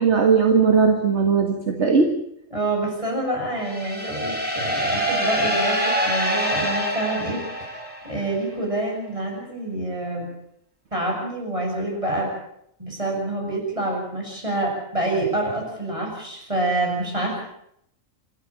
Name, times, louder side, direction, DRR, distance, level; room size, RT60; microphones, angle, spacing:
voice 1, 0.0-2.2, right 5 dB, 55° right, 4 dB, 2.1 m, -18 dB
voice 2, 2.5-7.4 8.1-10.3 10.9-12.3 12.8-17.4, right 1 dB, 25° right, 0 dB, 7.9 m, -27 dB
sound 1, 3.6-8.4, equal, 5° right, 5.6 m, -25 dB
26.5 x 13.0 x 8.7 m, 0.74 s
omnidirectional pair, 1.4 m